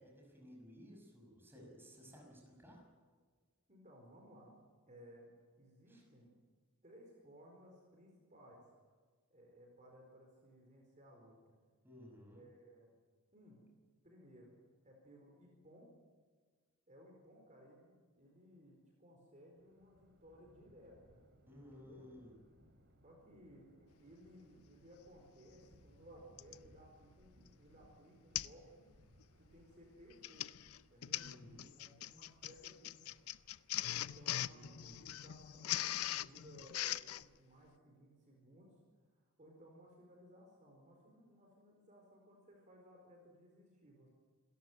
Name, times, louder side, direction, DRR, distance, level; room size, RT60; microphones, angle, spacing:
voice 1, 0.0-2.8 5.9-6.0 11.8-12.4 21.5-22.3 31.1-31.7 34.3-34.9, equal, 10° right, 0 dB, 5.9 m, -57 dB
voice 2, 3.7-4.5 4.9-5.3 5.6-6.4 6.8-8.6 9.3-11.6 12.3-12.9 13.3-13.6 14.0-14.6 14.8-15.9 16.9-21.2 21.7-22.1 23.0-28.9 29.4-30.5 30.9-31.3 31.8-33.2 33.8-38.8 39.1-44.1, equal, 35° right, 0 dB, 4.4 m, -60 dB
Thunder, 19.6-37.0, equal, 50° right, 2.9 m, -69 dB
Printer, 25.2-25.3 26.4-26.7 27.2-27.5 27.7-27.8 28.3-28.6 28.9-29.2 30.0-37.2, left 13 dB, 80° left, 0.6 m, -41 dB
27.0 x 14.0 x 9.3 m, 1.5 s
head